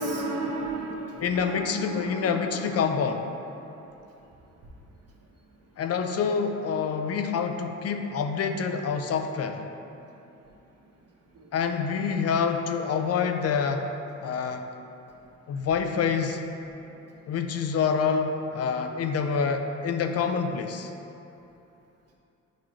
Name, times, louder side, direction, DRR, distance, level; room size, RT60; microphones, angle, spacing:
voice 1, 0.0-2.9 3.6-3.7 11.3-11.5, right 2 dB, 55° right, -2 dB, 1.3 m, -34 dB
voice 2, 1.2-3.3 5.8-9.7 11.5-13.9 14.2-14.7 15.5-16.5 17.3-20.9, left 6 dB, 55° left, 6 dB, 0.5 m, -27 dB
10.5 x 3.8 x 3.2 m, 2.8 s
cardioid pair, 90°, 30 cm